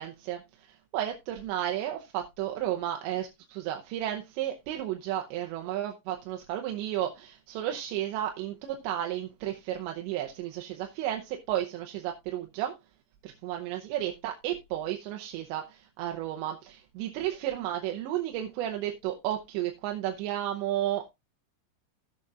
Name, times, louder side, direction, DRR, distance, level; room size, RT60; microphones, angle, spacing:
voice 1, 0.0-12.7 13.2-21.1, right 12 dB, 80° right, 2.8 m, -33 dB
17.0 x 6.8 x 2.4 m
omnidirectional pair, 5.6 m